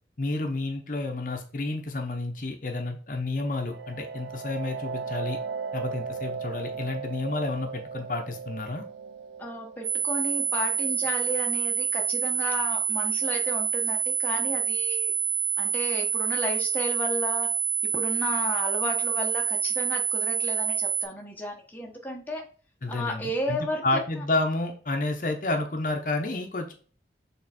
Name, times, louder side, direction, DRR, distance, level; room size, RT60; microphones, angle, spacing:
voice 1, 0.2-5.4 5.7-8.8 22.8-26.7, left 2 dB, 45° left, 4 dB, 0.8 m, -30 dB
sound 1, 3.3-12.8, right 5 dB, 80° right, 0.5 m, -38 dB
voice 2, 9.4-15.1 15.6-17.5 17.8-22.5 22.9-24.2, left 1 dB, 10° left, 0 dB, 1.0 m, -33 dB
sound 2, 9.8-21.0, right 6 dB, 40° right, 2.0 m, -27 dB
6.5 x 3.5 x 4.2 m, 0.40 s
head